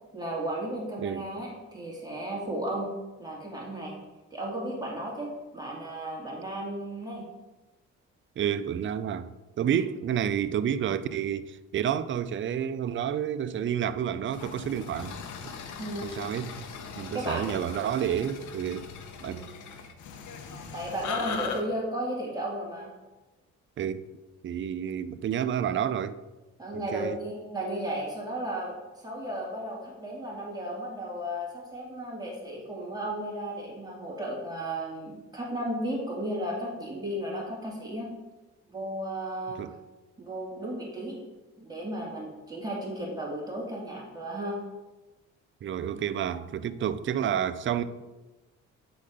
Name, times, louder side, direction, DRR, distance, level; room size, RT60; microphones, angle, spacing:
voice 1, 0.1-2.9 3.2-4.0 4.3-7.2 15.8-16.1 17.1-17.6 19.2-19.5 20.7-22.9 26.6-38.1 38.7-39.6 40.2-41.2 41.6-44.6 46.3-46.4, right 1 dB, 15° right, 2.2 m, -34 dB
voice 2, 1.0-1.3 8.4-15.5 16.0-16.7 16.9-18.9 19.2-19.4 23.8-24.0 24.4-26.2 26.7-27.2 39.6-39.7 45.6-47.8, right 9 dB, 40° right, 0.5 m, -30 dB
sound 1, 14.3-21.6, left 6 dB, 75° left, 0.9 m, -39 dB
8.5 x 4.1 x 5.0 m
cardioid pair, 90°, 30 cm